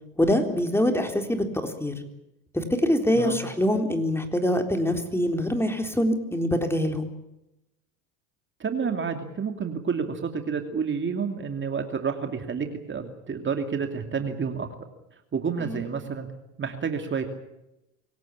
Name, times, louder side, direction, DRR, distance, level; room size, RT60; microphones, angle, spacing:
voice 1, 0.2-1.9 2.5-7.1 15.6-15.9, left 1 dB, 5° left, 5 dB, 3.8 m, -24 dB
voice 2, 8.6-14.7 15.3-16.3 16.6-17.3, right 6 dB, 30° right, 5 dB, 2.7 m, -29 dB
25.5 x 17.5 x 8.5 m, 0.91 s
supercardioid pair, 90°, 40 cm